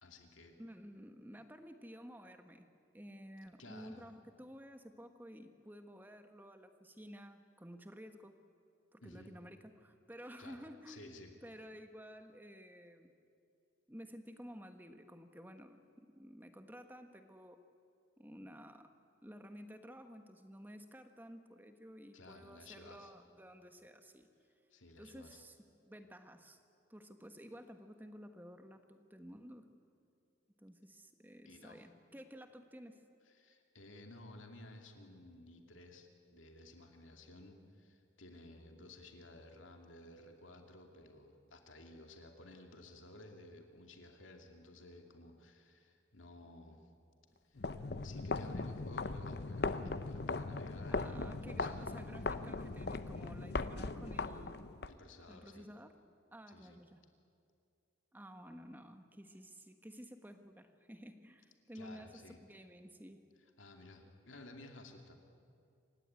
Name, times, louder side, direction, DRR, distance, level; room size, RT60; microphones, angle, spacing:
voice 1, 0.0-0.6 3.6-4.0 9.0-9.3 10.4-10.6 10.9-11.3 22.1-23.1 24.7-25.4 31.4-31.8 33.3-46.9 47.4-47.7 48.0-51.9 54.9-55.7 56.5-56.8 61.7-62.4 63.6-65.2, left 2 dB, 90° left, 3 dB, 2.6 m, -55 dB
voice 2, 0.6-2.7 2.9-8.4 8.9-13.1 13.9-17.6 18.2-18.9 19.2-24.3 25.0-25.6 25.8-26.6 26.9-29.7 30.6-33.0 50.9-54.7 55.3-55.9 56.3-57.0 58.1-63.3, equal, 10° right, 7 dB, 1.3 m, -53 dB
sound 1, 47.6-54.9, left 3 dB, 55° left, 0.8 m, -39 dB
27.0 x 16.0 x 9.6 m, 2.5 s
head